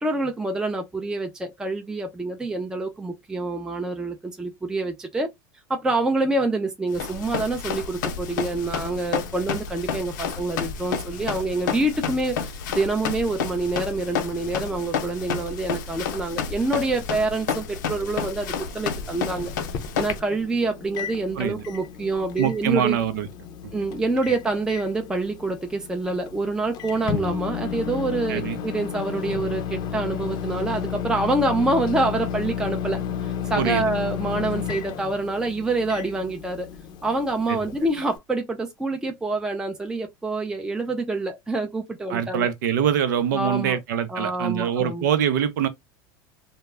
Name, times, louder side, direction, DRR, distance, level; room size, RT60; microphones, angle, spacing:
voice 1, 0.0-5.3 5.7-19.5 20.0-23.0 23.7-36.7 37.0-42.5 43.3-43.8 44.1-45.1, right 2 dB, 5° right, 0.4 m, -26 dB
Run, 6.9-20.2, left 6 dB, 90° left, 0.6 m, -30 dB
Microwave oven, 18.9-38.2, left 8 dB, 45° left, 0.5 m, -33 dB
voice 2, 22.4-23.3 23.6-23.7 28.3-28.6 33.6-33.8 37.5-37.6 42.1-45.7, right 9 dB, 85° right, 0.6 m, -24 dB
2.2 x 2.0 x 3.3 m
supercardioid pair, 120°, 10 cm